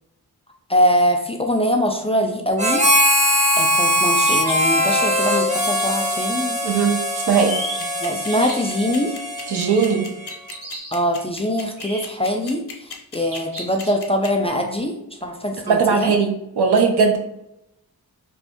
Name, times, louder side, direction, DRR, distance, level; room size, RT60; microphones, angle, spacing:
voice 1, 0.7-2.8 3.6-6.5 8.0-9.1 10.9-15.0 15.2-16.1, equal, 15° left, 3 dB, 0.3 m, -22 dB
Harmonica, 2.6-10.3, equal, 20° right, 0.7 m, -21 dB
sound 1, 3.1-3.5 4.2-5.0 7.1-7.8 8.3-8.8 10.3-10.9 11.8-12.3 13.2-14.1, equal, 55° right, 1.3 m, -35 dB
voice 2, 6.6-7.0 7.3-7.5 9.5-10.1 15.7-17.2, right 5 dB, 85° right, 3 dB, 0.7 m, -18 dB
sound 2, 7.8-14.5, left 5 dB, 75° left, 0.7 m, -36 dB
2.9 x 2.6 x 3.4 m, 0.85 s
wide cardioid pair, 90°, 38 cm